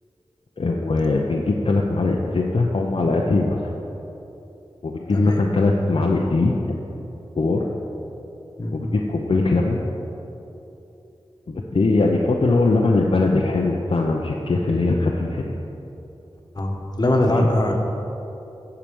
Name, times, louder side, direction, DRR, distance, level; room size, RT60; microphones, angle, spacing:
voice 1, 0.6-3.6 4.8-6.8 7.4-7.7 8.7-9.8 11.5-15.5 17.4-17.5, left 3 dB, 65° left, -1 dB, 0.7 m, -21 dB
voice 2, 5.1-5.4 8.6-8.8 16.6-17.7, left 1 dB, 40° left, 0 dB, 1.4 m, -21 dB
10.5 x 5.0 x 7.0 m, 3.0 s
wide cardioid pair, 70°, 10 cm